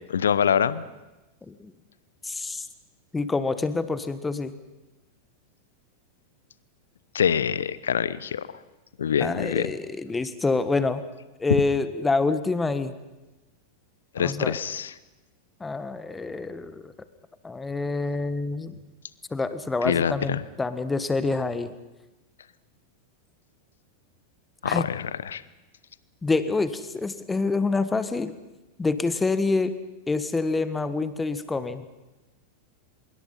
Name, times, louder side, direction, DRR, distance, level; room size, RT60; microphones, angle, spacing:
voice 1, 0.1-0.8 7.1-8.5 9.0-9.7 14.1-14.9 19.8-20.4 24.6-25.4, left 8 dB, 65° left, 18 dB, 0.9 m, -25 dB
voice 2, 2.2-2.7 3.1-4.5 9.2-11.0 11.4-12.9 14.2-14.6 15.6-16.9 17.4-18.8 19.3-21.7 24.6-24.8 26.2-28.3 28.8-29.7 30.1-31.8, left 3 dB, 10° left, 13 dB, 1.4 m, -27 dB
25.0 x 22.5 x 5.7 m, 1.1 s
figure-of-eight pair, 90°, 0 cm